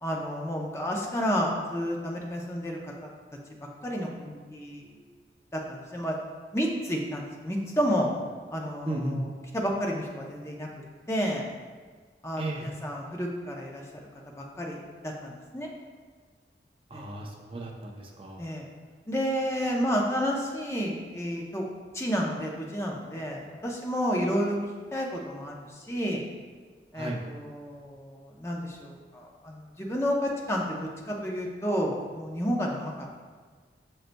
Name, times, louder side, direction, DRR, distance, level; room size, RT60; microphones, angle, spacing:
voice 1, 0.0-2.9 3.8-5.0 5.5-6.2 6.5-8.1 8.5-9.3 9.5-10.7 11.1-11.5 12.2-13.8 14.4-14.8 15.0-15.7 16.9-17.1 18.4-18.7 19.1-21.7 21.9-24.6 24.9-26.2 26.9-32.9, equal, 15° left, -1 dB, 0.7 m, -30 dB
voice 2, 8.8-9.2 12.4-12.7 16.9-18.4 26.9-27.2, right 1 dB, 30° right, -1 dB, 0.6 m, -34 dB
7.7 x 5.7 x 2.2 m, 1.5 s
head